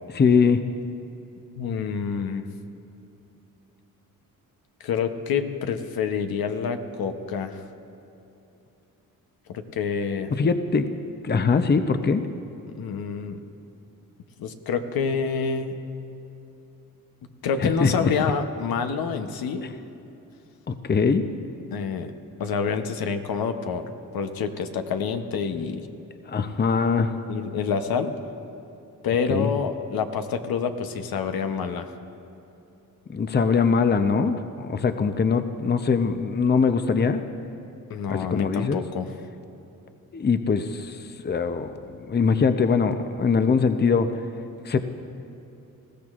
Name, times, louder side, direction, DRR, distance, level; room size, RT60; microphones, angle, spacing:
voice 1, 0.1-0.6 10.3-10.9 11.2-12.3 17.6-18.1 20.7-21.3 26.3-27.1 29.3-29.5 33.1-37.2 38.1-38.8 40.1-41.7 42.1-44.1 44.6-44.8, left 5 dB, 30° left, 9 dB, 0.7 m, -22 dB
voice 2, 1.6-2.5 4.8-7.6 9.5-10.3 12.7-13.4 14.4-15.8 17.4-19.7 21.7-22.1 22.4-25.9 27.3-28.1 29.0-31.9 37.9-39.1, left 6 dB, 80° left, 7 dB, 0.9 m, -27 dB
20.0 x 15.0 x 2.5 m, 2.9 s
cardioid pair, 70°, 36 cm